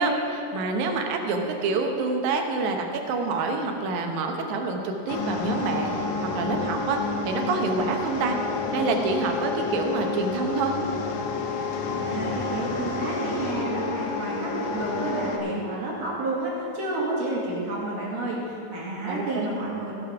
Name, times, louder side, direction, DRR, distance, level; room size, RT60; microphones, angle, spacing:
voice 1, 0.0-6.0 6.3-7.0 7.3-8.4 8.7-10.7 19.1-19.5, right 3 dB, 70° right, 3 dB, 2.3 m, -27 dB
sound 1, 5.1-15.4, left 4 dB, 80° left, 1.3 m, -30 dB
voice 2, 11.8-19.9, right 2 dB, 55° right, -5 dB, 3.1 m, -30 dB
15.5 x 7.0 x 5.9 m, 2.8 s
omnidirectional pair, 3.8 m